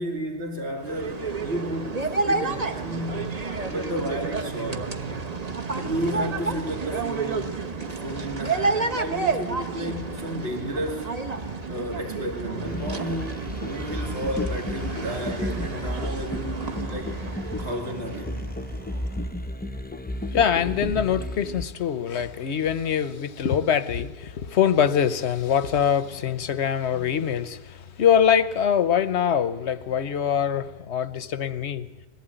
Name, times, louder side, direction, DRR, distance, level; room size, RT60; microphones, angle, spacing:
voice 1, 0.0-5.0 5.8-11.1 11.7-17.2 17.6-18.5 26.9-27.2, equal, 80° right, 2.9 m, -33 dB
sound 1, 0.8-19.3, right 4 dB, 35° right, 1.2 m, -30 dB
sound 2, 12.6-21.7, left 1 dB, 10° left, 0.5 m, -33 dB
voice 2, 20.3-31.9, left 8 dB, 85° left, 1.2 m, -23 dB
21.0 x 15.0 x 9.1 m
omnidirectional pair, 1.1 m